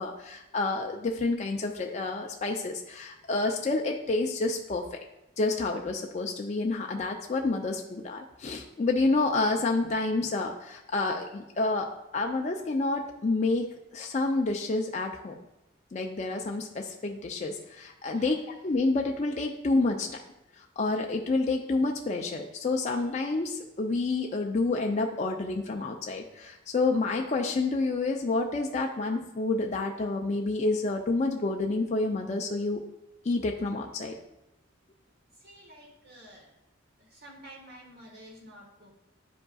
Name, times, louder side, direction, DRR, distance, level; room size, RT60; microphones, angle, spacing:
voice 1, 0.0-4.8 5.4-13.7 13.9-15.4 15.9-20.1 20.8-32.8 33.2-34.2, left 3 dB, 35° left, 1 dB, 0.4 m, -29 dB
voice 2, 35.3-36.5 37.0-38.9, right 1 dB, 55° right, -2 dB, 1.5 m, -50 dB
9.5 x 5.1 x 2.3 m, 0.91 s
head